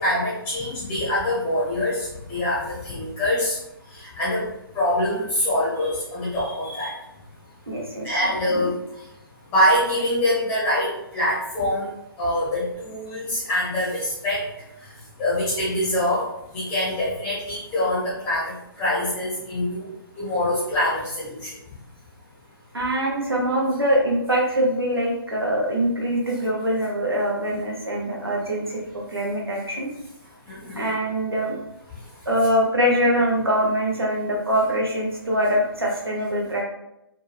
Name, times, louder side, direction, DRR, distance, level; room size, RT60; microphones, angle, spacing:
voice 1, 0.0-3.6 4.0-4.4 4.7-6.9 8.0-8.7 9.5-11.9 12.2-14.4 15.2-16.2 16.5-19.8 20.2-21.5 30.5-30.8, left 1 dB, 15° left, -8 dB, 0.7 m, -24 dB
voice 2, 7.7-8.7 22.7-29.9 30.7-31.5 32.2-36.6, equal, 75° right, -2 dB, 1.0 m, -23 dB
3.3 x 2.2 x 2.4 m, 0.85 s
figure-of-eight pair, 135°, 13 cm